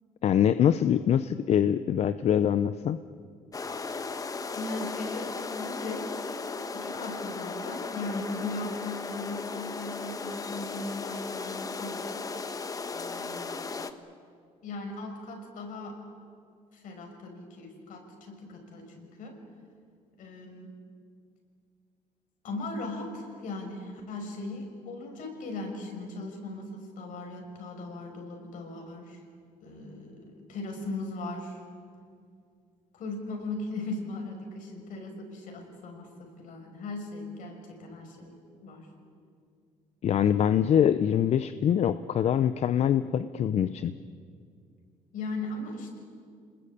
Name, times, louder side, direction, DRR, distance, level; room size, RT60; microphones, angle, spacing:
voice 1, 0.2-3.0 40.0-44.0, left 9 dB, 50° left, 13 dB, 0.7 m, -24 dB
sound 1, 3.5-13.9, left 4 dB, 25° left, 1.2 m, -36 dB
voice 2, 4.5-6.4 6.7-12.3 12.9-13.8 14.6-16.0 16.7-19.4 20.2-20.7 22.4-29.2 29.6-31.6 32.9-38.9 45.1-46.0, left 2 dB, 65° left, 3 dB, 6.0 m, -38 dB
28.0 x 20.5 x 8.6 m, 2.3 s
cardioid pair, 125°, 14 cm